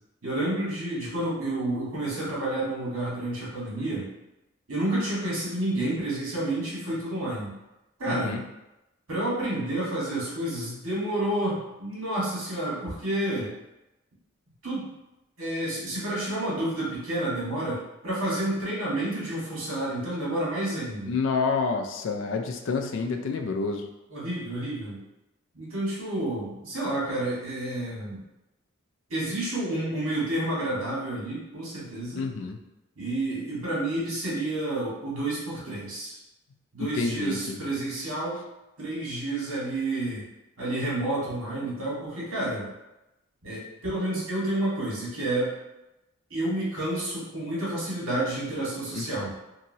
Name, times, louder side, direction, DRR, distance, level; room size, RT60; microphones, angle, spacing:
voice 1, 0.2-4.1 4.7-7.5 8.0-8.4 9.1-13.5 14.6-14.9 15.4-21.1 24.1-25.0 25.5-28.2 29.1-32.2 33.0-36.2 36.7-38.4 38.8-40.2 40.6-42.7 43.4-45.5 46.3-49.3, right 1 dB, 90° right, -6 dB, 1.4 m, -30 dB
voice 2, 8.1-8.4 21.1-23.9 32.1-32.6 36.8-37.8 48.9-49.1, left 4 dB, 65° left, 5 dB, 0.3 m, -29 dB
2.9 x 2.7 x 2.7 m, 0.96 s
head